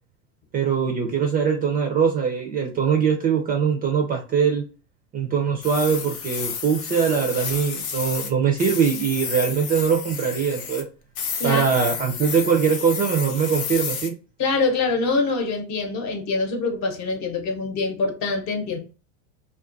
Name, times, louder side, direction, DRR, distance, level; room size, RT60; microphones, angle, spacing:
voice 1, 0.5-4.6 5.1-10.9 11.4-14.1, right 6 dB, 25° right, 0.3 m, -22 dB
sound 1, 5.6-8.3 8.6-10.8 11.2-14.1, left 7 dB, 90° left, 0.7 m, -31 dB
voice 2, 14.4-18.8, left 3 dB, 45° left, 0.8 m, -24 dB
2.4 x 2.2 x 2.4 m
supercardioid pair, 105°, 39 cm